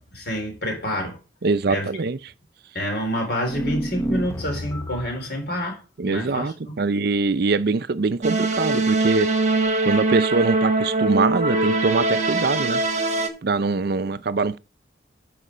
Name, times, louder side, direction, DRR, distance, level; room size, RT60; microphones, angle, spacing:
voice 1, 0.1-1.2 1.7-1.9 2.7-6.5, equal, 55° left, 3.9 m, -27 dB
voice 2, 1.4-2.2 6.0-9.3 9.8-12.8 13.4-14.6, right 3 dB, 55° right, 0.5 m, -23 dB
sound 1, 3.4-5.3, equal, 15° left, 0.8 m, -29 dB
sound 2, 8.2-13.3, right 2 dB, 35° right, 1.2 m, -22 dB
9.8 x 5.0 x 5.0 m
head